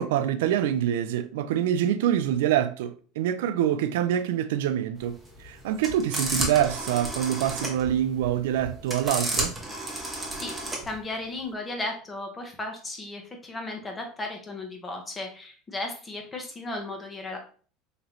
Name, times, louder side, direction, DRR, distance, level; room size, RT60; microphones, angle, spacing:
voice 1, 0.0-9.5, right 10 dB, 90° right, 0.3 m, -25 dB
sound 1, 5.0-11.0, right 1 dB, 10° right, 1.0 m, -32 dB
voice 2, 10.8-17.4, left 2 dB, 20° left, 0.9 m, -35 dB
3.9 x 3.0 x 3.0 m
supercardioid pair, 130°, 0 cm